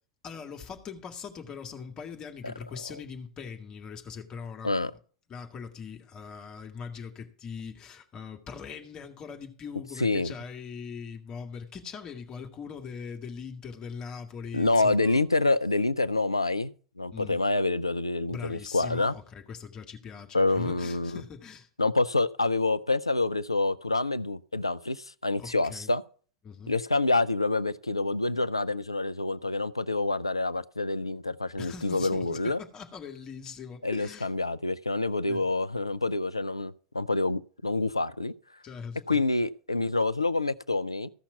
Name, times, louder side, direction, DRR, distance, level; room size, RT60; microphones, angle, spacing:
voice 1, 0.2-4.7 5.3-15.2 17.1-17.4 18.3-21.7 25.4-25.9 26.4-26.7 31.6-34.3 35.3-35.4 38.6-39.2, left 6 dB, 30° left, 1.9 m, -41 dB
voice 2, 10.0-10.3 14.5-19.1 20.3-21.2 21.8-26.0 26.7-32.6 33.8-38.3 39.1-41.1, left 2 dB, 85° left, 0.5 m, -27 dB
15.0 x 5.8 x 7.0 m
figure-of-eight pair, 85°, 3 cm